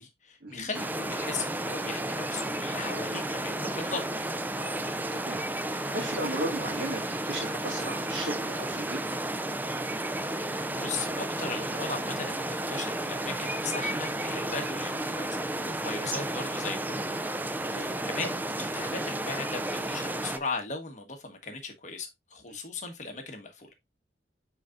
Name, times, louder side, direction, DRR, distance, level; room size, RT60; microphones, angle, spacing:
voice 1, 0.0-4.0 10.3-17.1 17.7-23.7, left 4 dB, 40° left, 1.4 m, -38 dB
sound 1, 0.7-20.4, right 1 dB, 10° right, 0.4 m, -32 dB
voice 2, 5.1-9.2 17.6-17.9 22.5-22.6, right 1 dB, 85° right, 2.0 m, -36 dB
9.4 x 3.9 x 2.5 m
head